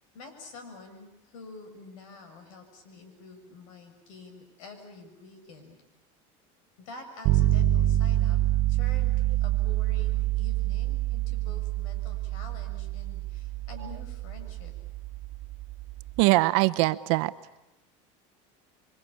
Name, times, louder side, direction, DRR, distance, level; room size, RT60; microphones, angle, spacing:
voice 1, 0.1-5.8 6.8-14.7, left 3 dB, 85° left, 6 dB, 7.1 m, -47 dB
sound 1, 7.2-16.2, right 15 dB, 50° right, 1.4 m, -27 dB
voice 2, 16.2-17.3, right 21 dB, 70° right, 13 dB, 1.0 m, -22 dB
28.0 x 24.0 x 8.7 m, 0.94 s
cardioid pair, 155°, 17 cm